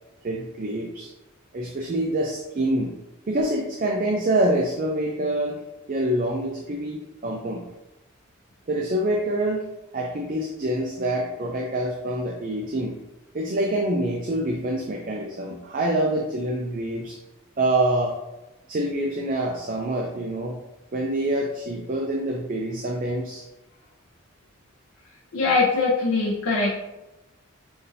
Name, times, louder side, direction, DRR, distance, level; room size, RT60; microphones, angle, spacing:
voice 1, 0.2-1.1 1.5-2.9 3.3-5.6 5.9-7.7 8.7-9.7 9.9-13.0 13.3-17.2 17.6-18.2 18.7-20.6 20.9-23.4, right 1 dB, 40° right, 0 dB, 0.4 m, -26 dB
voice 2, 25.3-26.7, left 3 dB, 90° left, -5 dB, 0.7 m, -22 dB
5.8 x 2.6 x 2.7 m, 0.98 s
head